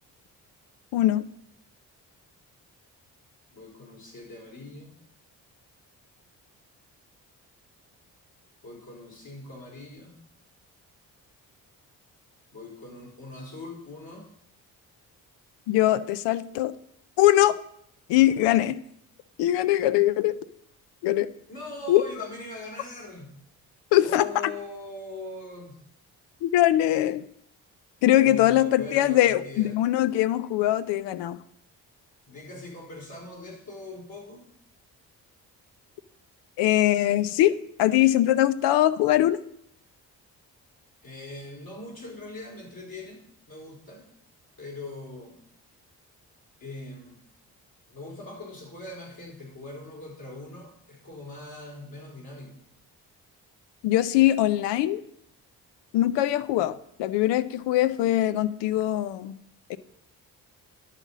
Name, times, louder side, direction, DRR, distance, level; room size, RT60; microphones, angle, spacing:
voice 1, 0.9-1.2 15.7-16.7 17.2-17.6 18.1-18.8 19.4-20.3 21.0-21.3 21.9-22.0 23.9-24.3 26.4-27.2 28.0-31.4 36.6-37.5 37.8-39.4 53.8-55.0 55.9-59.3 59.7-59.8, left 14 dB, 85° left, 15 dB, 0.6 m, -22 dB
voice 2, 3.5-4.9 8.6-10.1 12.5-14.3 21.5-23.4 24.0-25.8 28.2-29.8 32.3-34.4 41.0-44.1 44.6-45.4 46.6-47.2 47.9-52.6, left 2 dB, 60° left, -3 dB, 4.3 m, -41 dB
11.0 x 4.1 x 7.3 m, 0.70 s
supercardioid pair, 50°, 41 cm